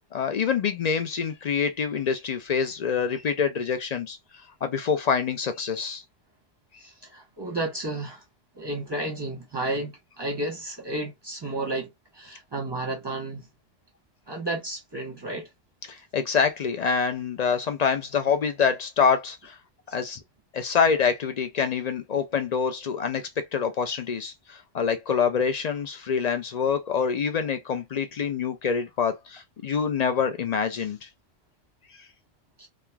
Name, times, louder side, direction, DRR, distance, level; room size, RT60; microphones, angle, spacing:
voice 1, 0.1-4.2 4.6-6.0 15.9-19.6 19.9-20.2 20.5-31.1, left 6 dB, 60° left, 0.4 m, -26 dB
voice 2, 6.8-8.2 8.5-13.5 14.3-15.5 19.9-20.0 32.6-32.7, right 2 dB, 25° right, 0.9 m, -32 dB
3.1 x 2.4 x 2.2 m
omnidirectional pair, 1.2 m